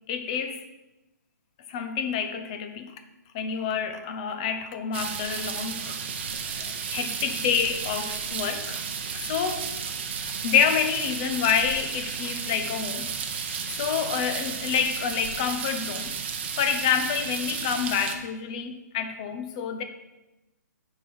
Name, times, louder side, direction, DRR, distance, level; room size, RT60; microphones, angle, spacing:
voice 1, 0.1-0.6 1.7-2.9 3.3-6.0 6.4-8.8 9.1-9.7 10.4-13.1 13.8-16.2 16.5-19.8, left 7 dB, 20° left, 0.5 m, -28 dB
sound 1, 4.9-18.2, right 6 dB, 35° right, 0.8 m, -33 dB
9.0 x 4.7 x 5.4 m
hypercardioid pair, 170°, 10 cm